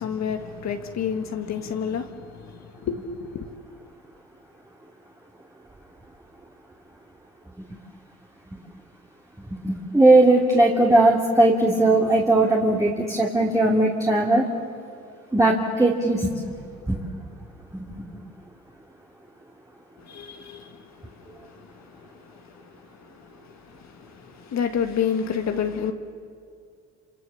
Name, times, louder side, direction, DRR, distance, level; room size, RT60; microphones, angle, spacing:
voice 1, 0.0-3.5 20.1-20.8 24.4-25.9, left 7 dB, 65° left, 1.7 m, -28 dB
voice 2, 9.6-14.5 15.3-16.3 16.9-17.0 17.7-17.8, right 2 dB, 10° right, 2.7 m, -18 dB
28.0 x 27.0 x 7.1 m
cardioid pair, 90°, 30 cm